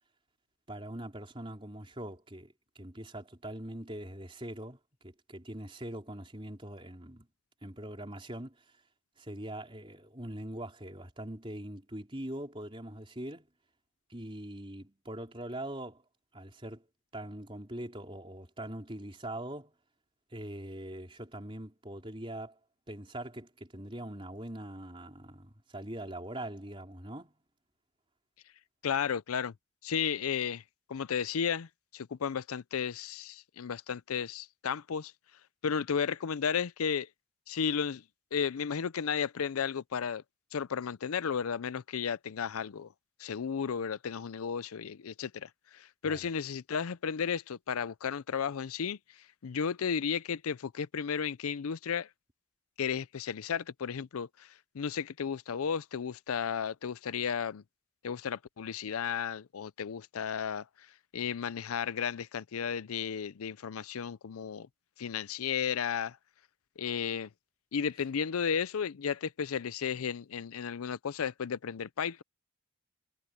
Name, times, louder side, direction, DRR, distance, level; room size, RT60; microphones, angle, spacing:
voice 1, 0.7-4.8 5.0-7.3 7.6-8.8 9.2-13.5 14.1-16.0 16.3-16.8 17.1-19.7 20.3-22.6 22.9-27.3 46.0-46.3, right 1 dB, 25° right, 4.0 m, -42 dB
voice 2, 28.8-29.5 29.8-30.6 30.9-35.1 35.6-37.1 37.5-38.0 38.3-40.2 40.5-42.9 43.2-49.0 49.4-52.1 52.8-57.6 58.0-60.9 61.1-64.7 65.0-66.2 66.8-67.3 67.7-72.2, left 7 dB, 85° left, 0.5 m, -33 dB
head